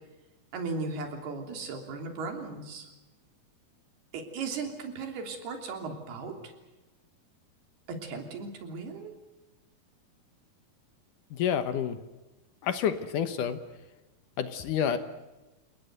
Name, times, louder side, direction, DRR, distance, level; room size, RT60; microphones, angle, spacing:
voice 1, 0.5-2.9 4.1-6.5 7.9-9.1, right 4 dB, 90° right, 4 dB, 5.2 m, -37 dB
voice 2, 11.3-12.0 12.6-13.6 14.4-15.0, left 8 dB, 70° left, 10 dB, 2.4 m, -28 dB
29.0 x 19.0 x 8.0 m, 1.1 s
omnidirectional pair, 4.4 m